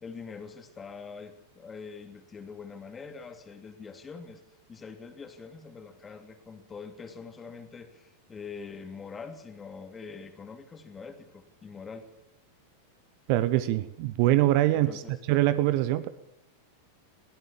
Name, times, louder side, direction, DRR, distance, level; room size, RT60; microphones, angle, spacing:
voice 1, 0.0-4.4 4.7-12.1 14.8-15.2, left 5 dB, 15° left, 6 dB, 2.9 m, -44 dB
voice 2, 13.3-14.9 15.3-16.1, right 15 dB, 45° right, 14 dB, 1.1 m, -23 dB
22.0 x 17.0 x 7.3 m, 0.79 s
figure-of-eight pair, 90°, 0 cm